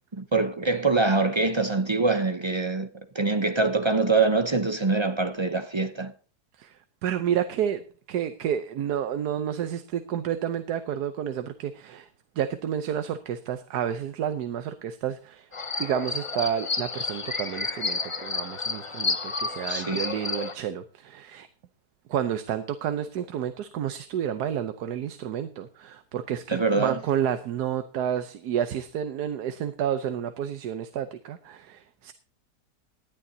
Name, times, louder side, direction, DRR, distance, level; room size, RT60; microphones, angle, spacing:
voice 1, 0.1-2.9 3.1-6.1 19.7-20.0 26.5-27.0, right 3 dB, 50° right, 0.3 m, -24 dB
voice 2, 6.6-7.8 8.1-12.1 12.4-15.5 15.8-21.5 22.1-32.1, right 9 dB, 75° right, 1.3 m, -30 dB
sound 1, 15.5-20.5, left 3 dB, 30° left, 0.5 m, -31 dB
19.0 x 11.0 x 2.8 m
omnidirectional pair, 1.8 m